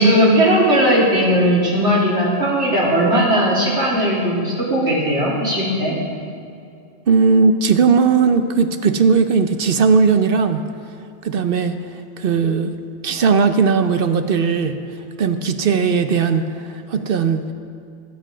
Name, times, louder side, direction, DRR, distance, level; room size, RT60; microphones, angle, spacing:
voice 1, 0.0-6.0, equal, 70° right, -6 dB, 3.5 m, -17 dB
voice 2, 7.1-10.6 11.2-11.8 12.2-12.7 13.0-14.8 15.2-16.5 16.9-17.4, right 5 dB, 55° right, 8 dB, 0.9 m, -17 dB
22.0 x 8.0 x 5.0 m, 2.4 s
omnidirectional pair, 1.2 m